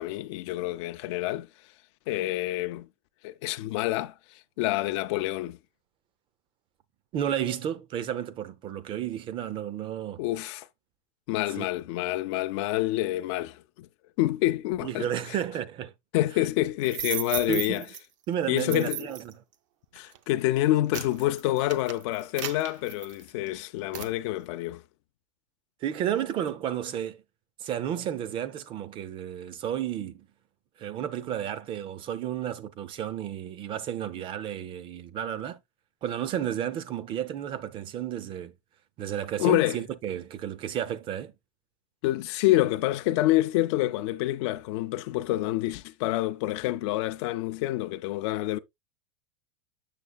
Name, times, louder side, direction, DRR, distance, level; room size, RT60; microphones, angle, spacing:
voice 1, 0.0-1.5 2.1-2.9 3.2-5.6 10.2-10.7 11.3-13.9 14.2-15.4 16.1-17.8 18.5-19.0 19.9-24.8 39.4-39.8 42.0-48.6, left 16 dB, 55° left, 0.4 m, -27 dB
voice 2, 7.1-10.2 11.6-11.7 14.8-15.9 17.5-17.9 18.3-19.4 25.8-27.2 27.6-30.3 30.8-35.6 36.0-38.5 39.0-41.3, right 10 dB, 30° right, 0.5 m, -32 dB
sound 1, 16.8-18.0 18.6-19.3 20.0-20.2 20.6-23.5 23.9-24.2, right 11 dB, 70° right, 0.7 m, -36 dB
6.6 x 6.3 x 2.3 m
supercardioid pair, 145°, 17 cm